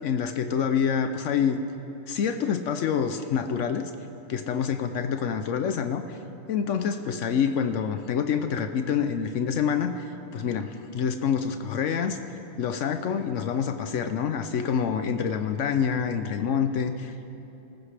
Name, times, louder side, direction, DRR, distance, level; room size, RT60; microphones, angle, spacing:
voice 1, 0.0-1.6 2.1-3.9 4.3-6.2 6.5-17.3, left 7 dB, 75° left, 8 dB, 1.0 m, -27 dB
25.5 x 14.5 x 3.3 m, 3.0 s
omnidirectional pair, 1.3 m